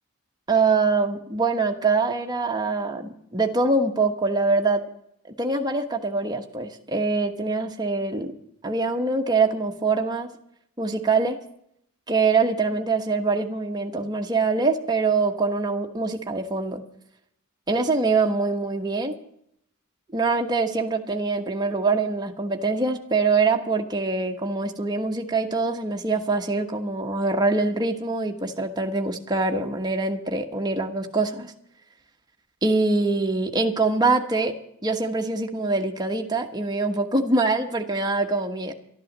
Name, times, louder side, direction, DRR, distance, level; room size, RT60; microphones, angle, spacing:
voice 1, 0.5-4.8 5.4-8.3 8.6-10.3 10.8-11.4 12.1-16.8 17.7-19.1 20.1-31.5 32.6-34.5 34.8-38.7, right 3 dB, 20° right, 3 dB, 1.2 m, -24 dB
12.5 x 11.0 x 7.4 m, 0.73 s
head